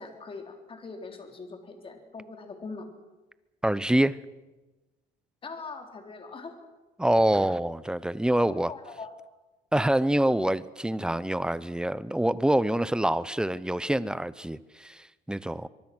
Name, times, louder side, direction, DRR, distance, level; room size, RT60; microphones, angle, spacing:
voice 1, 0.0-2.9 5.4-6.6 8.4-9.1, left 4 dB, 30° left, 4 dB, 4.0 m, -42 dB
voice 2, 3.6-4.2 7.0-8.7 9.7-15.7, right 1 dB, 5° right, 17 dB, 0.8 m, -26 dB
24.0 x 23.0 x 6.3 m, 1.1 s
cardioid pair, 110°, 17 cm